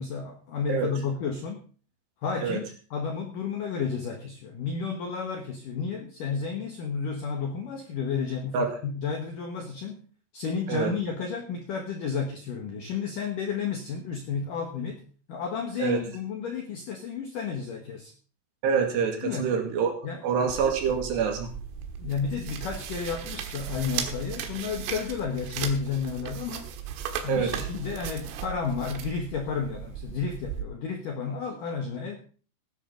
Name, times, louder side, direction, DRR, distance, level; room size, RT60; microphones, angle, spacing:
voice 1, 0.0-1.6 2.2-2.6 2.9-10.0 10.3-15.0 15.3-18.1 19.2-19.6 20.0-20.3 22.0-26.7 27.2-32.2, left 6 dB, 70° left, 3 dB, 2.1 m, -32 dB
voice 2, 18.6-19.9 20.2-21.5 27.3-27.5, right 6 dB, 65° right, 3 dB, 4.0 m, -26 dB
sound 1, 20.5-30.6, right 8 dB, 85° right, 3.9 m, -37 dB
16.5 x 10.5 x 3.8 m, 0.38 s
omnidirectional pair, 5.7 m